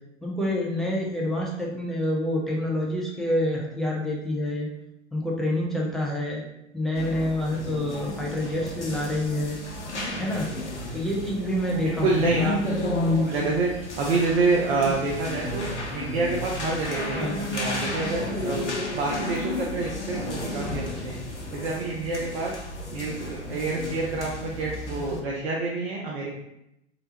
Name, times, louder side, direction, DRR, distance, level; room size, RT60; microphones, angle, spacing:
voice 1, 0.2-4.7 5.1-6.4 6.7-9.6 10.2-10.5 10.9-12.3 17.1-17.4, left 1 dB, ahead, -4 dB, 0.3 m, -27 dB
sound 1, 6.9-25.2, left 1 dB, 85° left, 0.7 m, -32 dB
voice 2, 11.8-12.9 13.3-13.7 14.0-15.7 15.9-18.7 18.9-21.2 21.5-22.5 22.9-26.3, right 3 dB, 60° right, -2 dB, 0.7 m, -27 dB
3.2 x 3.0 x 2.8 m, 0.84 s
figure-of-eight pair, 95°, 34 cm